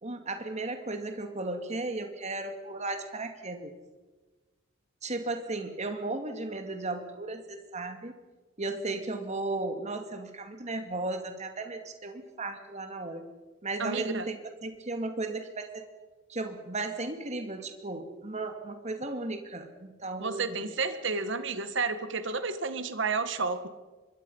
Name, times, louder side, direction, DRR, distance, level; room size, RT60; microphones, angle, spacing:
voice 1, 0.0-3.8 5.0-8.2 8.6-13.3 13.6-14.4 14.6-15.8 16.3-20.6, right 2 dB, 35° right, 6 dB, 2.4 m, -35 dB
voice 2, 13.8-14.3 20.2-23.7, right 4 dB, 60° right, 10 dB, 1.8 m, -31 dB
25.5 x 22.5 x 5.6 m, 1.3 s
head